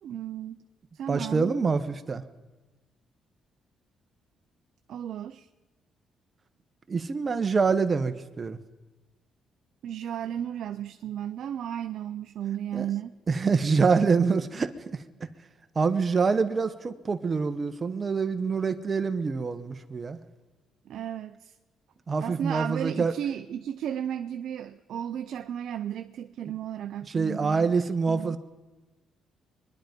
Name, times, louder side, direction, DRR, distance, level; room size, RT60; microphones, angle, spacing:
voice 1, 0.0-0.6 0.9-1.6 4.9-5.5 9.8-13.2 20.9-21.5 22.2-27.7 28.1-28.4, right 10 dB, 75° right, 8 dB, 0.5 m, -34 dB
voice 2, 1.1-2.2 6.9-8.6 12.7-12.9 13.3-15.0 15.7-20.2 22.1-23.1 27.1-28.4, right 5 dB, 35° right, 10 dB, 1.0 m, -26 dB
24.5 x 10.5 x 5.2 m, 1.2 s
cardioid pair, 90°, 0 cm